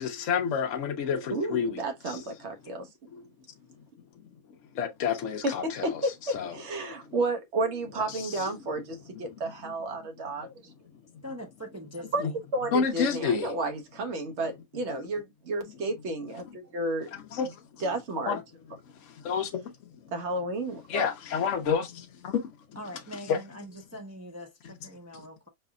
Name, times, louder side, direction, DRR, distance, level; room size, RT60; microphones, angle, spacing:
voice 1, 0.0-2.2 3.1-3.2 4.7-6.0 6.3-6.6 8.1-8.5 12.2-12.3 12.7-13.5 17.1-17.8 18.3-18.4 19.0-19.9 20.9-22.5 23.3-23.4, left 6 dB, 65° left, 1.0 m, -30 dB
voice 2, 1.3-2.9 5.4-10.5 12.1-12.2 12.5-17.1 17.8-18.4 20.1-21.1, right 2 dB, 55° right, 1.2 m, -32 dB
voice 3, 11.2-12.4 22.7-25.5, equal, 20° right, 0.5 m, -42 dB
4.9 x 3.3 x 2.3 m
omnidirectional pair, 1.5 m